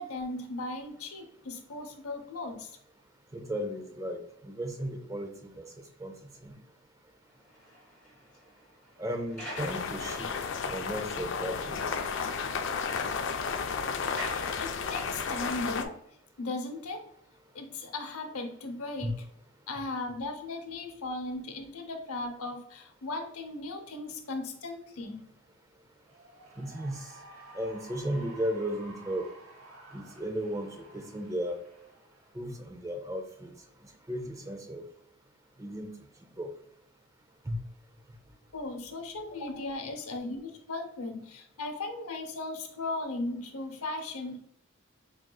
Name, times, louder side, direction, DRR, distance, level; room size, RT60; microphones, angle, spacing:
voice 1, 0.0-2.8 14.6-16.0 16.4-17.0 17.5-19.2 19.7-25.2 38.5-44.4, left 2 dB, 80° left, 6 dB, 0.7 m, -37 dB
voice 2, 3.3-5.3 5.6-5.7 6.0-6.1 6.4-6.5 9.0-10.3 10.7-11.8 19.0-19.1 26.6-27.1 27.5-29.2 29.9-31.6 32.3-33.5 34.1-34.8 35.6-35.9 36.4-36.5 37.5-37.6, equal, 15° right, 5 dB, 0.4 m, -35 dB
sound 1, 7.2-10.7 11.2-11.3 11.7-11.8 12.1-15.3, equal, 5° left, 1.3 m, -47 dB
sound 2, 9.6-15.9, left 5 dB, 55° left, 0.3 m, -33 dB
Cheering / Applause, 25.9-32.6, right 2 dB, 75° right, 1.2 m, -52 dB
4.6 x 3.6 x 2.2 m, 0.72 s
head